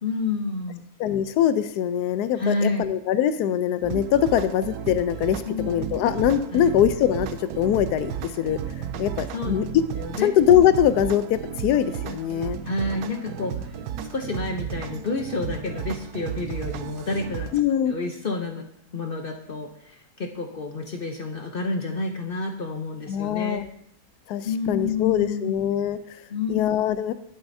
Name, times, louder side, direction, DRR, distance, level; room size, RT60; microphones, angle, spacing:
voice 1, 0.0-0.8 2.4-2.9 5.4-5.7 6.5-6.7 9.3-9.6 10.0-10.3 12.6-13.8 14.1-17.5 17.9-18.6 18.9-23.7 24.4-25.6 26.3-27.0, left 3 dB, 55° left, 4 dB, 0.6 m, -29 dB
voice 2, 1.0-9.8 10.2-12.6 17.5-18.0 23.1-23.6 24.3-26.2 26.5-27.1, left 10 dB, 80° left, 12 dB, 1.1 m, -22 dB
sound 1, 3.8-17.6, right 8 dB, 80° right, 1.1 m, -34 dB
11.5 x 8.3 x 2.6 m, 0.70 s
omnidirectional pair, 1.7 m